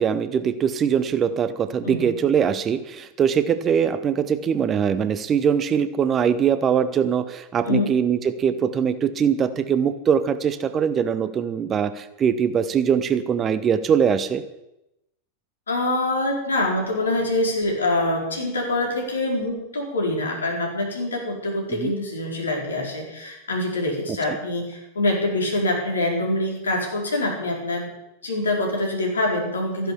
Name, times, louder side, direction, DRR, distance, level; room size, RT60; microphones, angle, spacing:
voice 1, 0.0-14.4 21.7-21.9 24.1-24.4, right 7 dB, 25° right, 13 dB, 0.9 m, -22 dB
voice 2, 15.7-27.9 28.2-29.9, left 2 dB, 70° left, 0 dB, 4.6 m, -25 dB
14.5 x 10.5 x 6.9 m, 0.90 s
figure-of-eight pair, 90°, 0 cm